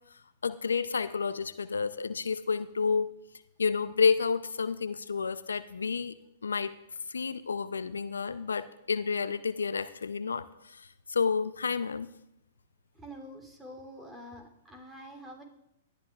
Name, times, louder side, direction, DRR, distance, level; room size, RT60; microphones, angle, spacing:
voice 1, 0.4-3.1 3.6-6.1 6.4-6.7 7.1-12.1, left 5 dB, 85° left, 14 dB, 0.5 m, -30 dB
voice 2, 12.9-15.4, equal, 10° right, 2 dB, 3.1 m, -46 dB
19.5 x 12.5 x 2.4 m, 0.81 s
hypercardioid pair, 115°, 0 cm